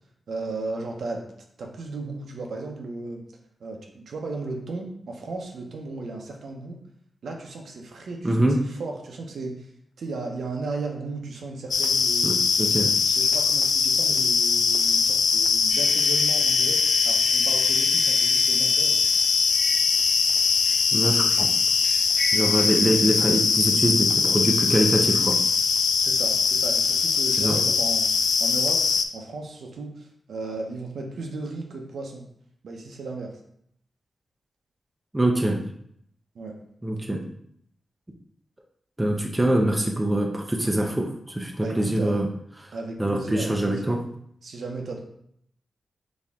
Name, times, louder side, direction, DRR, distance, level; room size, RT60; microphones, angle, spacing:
voice 1, 0.3-1.2 1.6-3.2 3.6-6.8 7.2-8.4 8.8-9.7 10.0-12.4 13.0-19.0 26.0-28.1 28.4-32.2 32.6-33.3 36.3-36.6 41.6-42.3 42.7-44.0 44.4-45.0, right 3 dB, 75° right, 1 dB, 0.8 m, -35 dB
voice 2, 8.2-8.6 12.2-12.9 20.9-21.5 22.3-25.4 27.4-27.6 35.1-35.6 36.8-37.2 39.0-42.3 43.0-44.0, right 1 dB, 15° right, 1 dB, 0.6 m, -24 dB
sound 1, 11.7-29.1, left 5 dB, 80° left, 0.3 m, -22 dB
sound 2, 15.7-23.3, left 1 dB, 5° left, 1.2 m, -35 dB
4.2 x 3.5 x 3.6 m, 0.70 s
wide cardioid pair, 115°, 0 cm